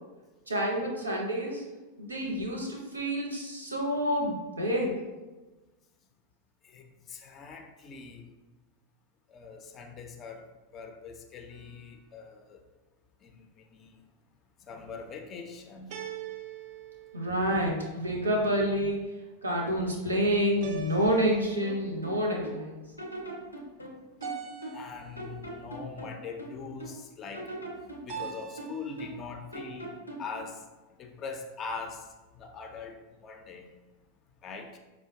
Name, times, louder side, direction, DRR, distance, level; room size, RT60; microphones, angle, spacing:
voice 1, 0.5-1.6 2.0-5.0 17.1-19.0 19.4-22.8, equal, 80° right, -1 dB, 0.7 m, -28 dB
voice 2, 6.6-8.2 9.3-10.5 10.7-12.6 13.2-13.5 13.7-14.0 14.7-15.9 24.7-27.5 28.0-29.9 30.2-30.6 31.0-32.0 32.4-33.0 33.2-33.7 34.4-34.8, left 5 dB, 30° left, 4 dB, 0.4 m, -42 dB
sound 1, 11.5-12.2 15.9-17.9 20.6-22.0 24.2-25.4 28.1-29.1, right 7 dB, 50° right, 0.4 m, -43 dB
sound 2, 21.6-22.6 23.0-24.9 25.2-27.0 27.3-29.3 29.5-30.3, right 1 dB, 85° left, 0.5 m, -41 dB
4.8 x 2.2 x 2.6 m, 1.2 s
figure-of-eight pair, 90°, 0 cm